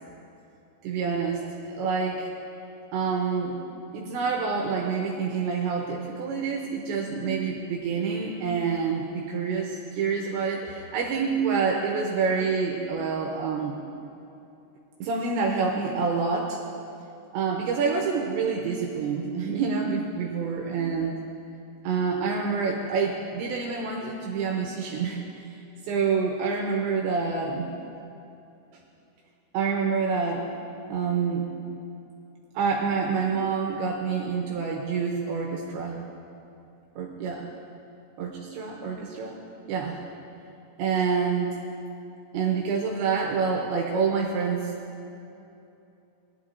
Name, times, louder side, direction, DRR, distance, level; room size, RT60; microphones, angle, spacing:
voice 1, 0.8-1.4 1.7-2.3 2.9-3.6 3.9-13.8 15.0-16.6 17.3-21.1 21.8-25.2 25.8-27.7 29.5-30.4 30.9-31.5 32.5-36.0 37.0-37.5 38.2-39.4 39.7-40.0 40.8-41.5 42.3-44.7, right 5 dB, 80° right, -1 dB, 2.8 m, -27 dB
18.5 x 11.5 x 2.7 m, 2.8 s
omnidirectional pair, 5.8 m